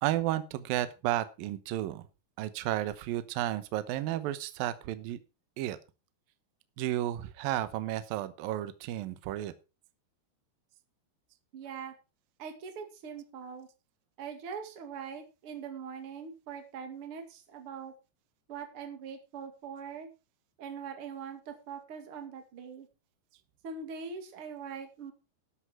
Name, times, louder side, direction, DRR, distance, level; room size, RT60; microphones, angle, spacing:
voice 1, 0.0-2.1 2.4-5.2 5.6-5.8 6.8-9.5, right 13 dB, 70° right, 13 dB, 2.5 m, -32 dB
voice 2, 11.5-11.9 12.4-13.7 14.2-17.9 18.5-20.1 20.6-22.9 23.6-25.1, right 6 dB, 40° right, 6 dB, 2.5 m, -42 dB
12.5 x 10.0 x 4.5 m, 0.30 s
omnidirectional pair, 4.8 m